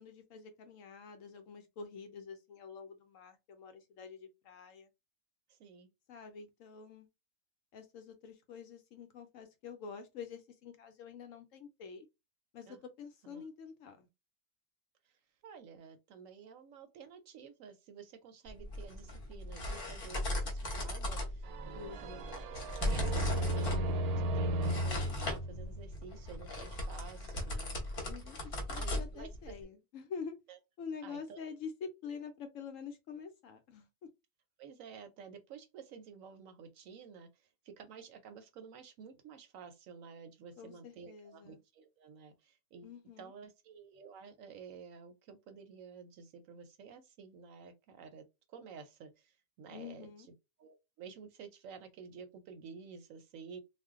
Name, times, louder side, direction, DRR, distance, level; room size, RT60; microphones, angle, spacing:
voice 1, 0.0-4.9 6.1-7.1 7.7-12.1 12.5-14.1 21.7-22.3 28.1-30.4 30.8-33.9 40.6-41.6 42.8-43.3 49.7-50.3, left 6 dB, 70° left, 0.9 m, -47 dB
voice 2, 5.5-5.9 12.7-12.8 13.2-13.5 15.0-22.5 22.8-27.8 28.3-29.5 30.5-30.6 31.0-31.4 34.6-50.1 50.6-53.6, right 6 dB, 70° right, 0.9 m, -52 dB
sound 1, 18.5-29.6, left 1 dB, 45° left, 0.9 m, -38 dB
sound 2, 21.4-26.2, right 1 dB, 85° right, 1.1 m, -35 dB
2.5 x 2.1 x 3.5 m
omnidirectional pair, 1.6 m